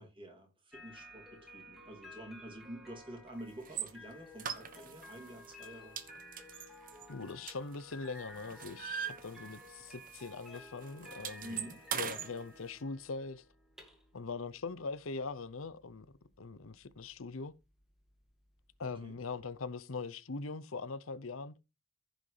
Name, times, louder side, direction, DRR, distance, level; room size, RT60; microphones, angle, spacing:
voice 1, 0.0-6.0 11.4-11.8 19.0-19.2, right 1 dB, 25° right, 2.8 m, -48 dB
sound 1, 0.7-19.7, left 1 dB, ahead, 2.2 m, -54 dB
sound 2, 3.6-3.9 4.4-5.1 5.4-5.7 6.0-8.0 8.3-9.8 10.1-10.3 10.5-12.3, right 8 dB, 40° right, 1.0 m, -40 dB
voice 2, 7.1-11.6 11.9-13.4 14.1-16.1 16.4-17.5 18.8-21.5, left 4 dB, 80° left, 0.7 m, -41 dB
15.0 x 6.2 x 3.3 m
head